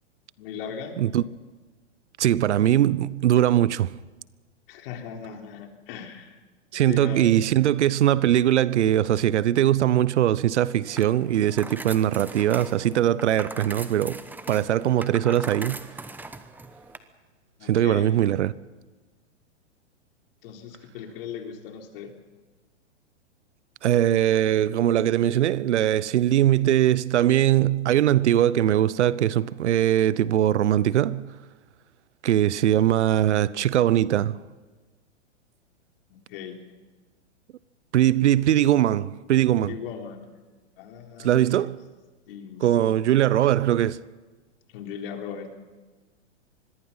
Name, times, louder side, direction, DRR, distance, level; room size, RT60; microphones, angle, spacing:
voice 1, 0.4-1.0 4.7-6.4 6.7-7.4 17.6-18.1 20.4-22.1 36.1-36.6 39.6-40.3 40.8-41.5 42.3-43.0 44.7-45.5, left 7 dB, 50° left, 3.8 m, -38 dB
voice 2, 2.2-3.9 6.7-14.2 14.5-15.9 17.7-18.5 23.8-31.3 32.2-34.4 37.9-39.7 41.2-41.8 42.6-44.0, right 12 dB, 70° right, 0.9 m, -21 dB
sound 1, 10.9-17.0, right 3 dB, 5° right, 0.9 m, -40 dB
25.5 x 21.0 x 5.7 m
hypercardioid pair, 130°, 36 cm